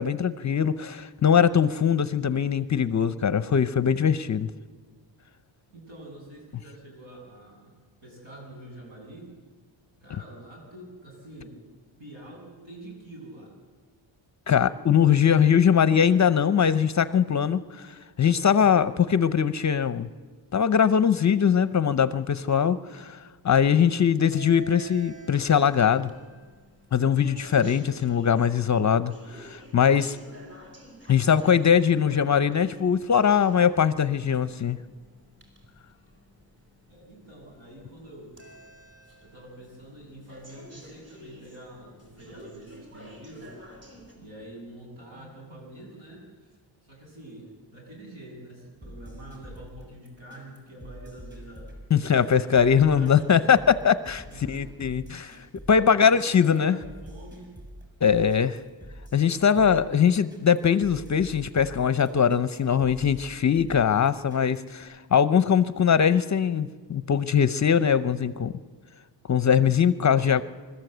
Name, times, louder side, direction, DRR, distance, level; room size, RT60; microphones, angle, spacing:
voice 1, 0.0-4.5 14.5-20.1 20.5-23.2 23.4-26.1 26.9-30.2 31.1-34.8 51.9-56.8 58.0-58.6 59.1-68.5 69.3-70.4, left 7 dB, 35° left, 14 dB, 0.6 m, -21 dB
voice 2, 5.7-7.7 8.0-9.3 10.0-11.6 12.0-13.5 36.9-38.4 39.2-43.6 44.2-51.8 52.3-53.5 54.3-54.9 55.6-57.5, right 1 dB, 70° right, 0 dB, 7.8 m, -46 dB
sound 1, 24.3-44.1, equal, 30° right, 5.0 m, -50 dB
sound 2, 48.8-64.8, equal, 10° right, 6.3 m, -45 dB
25.5 x 13.0 x 7.9 m, 1.5 s
cardioid pair, 120°, 48 cm